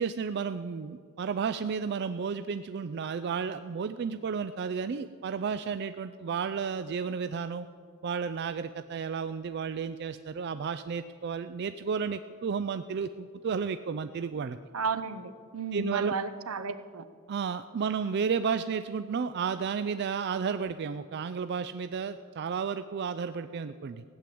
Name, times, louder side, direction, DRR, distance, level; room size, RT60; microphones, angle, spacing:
voice 1, 0.0-7.7 8.0-14.6 15.7-16.1 17.3-24.0, right 6 dB, 50° right, 11 dB, 0.4 m, -32 dB
voice 2, 14.7-17.0, right 5 dB, 75° right, 12 dB, 0.8 m, -33 dB
16.5 x 7.7 x 8.5 m, 2.2 s
head